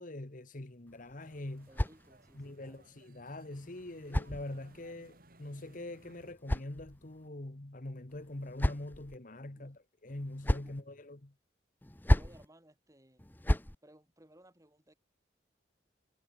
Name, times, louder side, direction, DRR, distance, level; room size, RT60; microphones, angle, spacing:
voice 1, 0.0-1.7 2.3-11.3, left 1 dB, 45° left, 1.3 m, -44 dB
sound 1, 0.9-2.5 3.5-5.0 5.9-7.3 8.1-9.2 10.1-10.8 11.8-12.5 13.2-13.8, left 1 dB, 10° left, 0.6 m, -34 dB
sound 2, 1.2-6.3, right 2 dB, 50° right, 4.6 m, -62 dB
voice 2, 1.7-2.9 9.5-9.7 10.6-10.9 12.1-13.3 13.8-14.9, right 1 dB, 15° right, 3.9 m, -61 dB
head